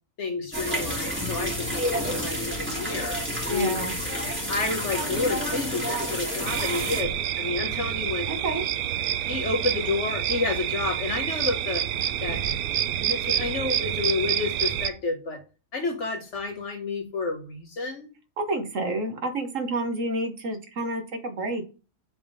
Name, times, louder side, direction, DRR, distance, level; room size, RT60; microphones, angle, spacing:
voice 1, 0.2-3.8 4.5-8.3 9.3-11.9 12.2-12.4 13.0-15.4 15.7-18.1, left 3 dB, 55° left, 1.2 m, -30 dB
sound 1, 0.5-7.0, equal, 10° right, 1.6 m, -29 dB
voice 2, 3.5-4.0 8.3-8.6 18.4-21.7, right 2 dB, 60° right, 1.5 m, -29 dB
sound 2, 6.5-14.9, right 11 dB, 80° right, 1.1 m, -28 dB
7.7 x 3.5 x 4.9 m
omnidirectional pair, 1.5 m